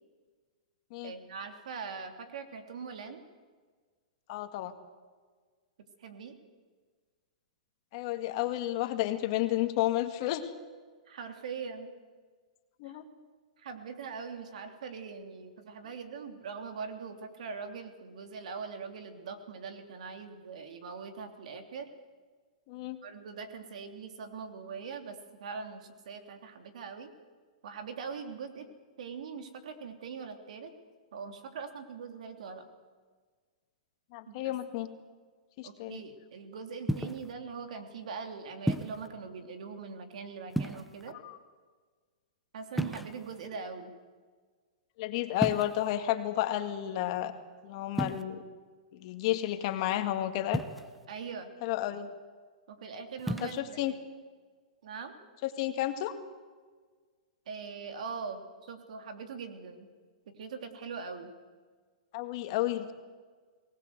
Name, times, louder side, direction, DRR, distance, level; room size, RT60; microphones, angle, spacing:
voice 1, 1.0-3.2 6.0-6.4 11.1-11.9 12.8-12.9 13.6-21.9 23.0-27.1 27.6-28.7 29.0-30.7 31.1-32.6 34.3-34.5 35.6-41.2 42.5-43.9 51.1-51.5 52.7-54.0 54.8-55.1 57.5-59.9 60.3-61.3, right 5 dB, 70° right, 6 dB, 3.1 m, -42 dB
voice 2, 4.3-4.7 7.9-10.5 12.8-13.0 22.7-23.0 34.1-34.9 35.6-36.0 41.2-41.4 45.0-47.3 47.6-48.4 48.9-50.6 51.6-52.1 53.4-53.9 55.6-56.2 62.1-62.9, left 14 dB, 45° left, 7 dB, 2.0 m, -31 dB
sound 1, 36.9-37.3 38.7-39.1 40.5-41.1 42.8-43.5 45.4-45.9 47.9-48.2 50.5-51.1 53.2-53.6, equal, ahead, 0.8 m, -33 dB
22.5 x 19.0 x 8.1 m, 1.5 s
hypercardioid pair, 145°, 4 cm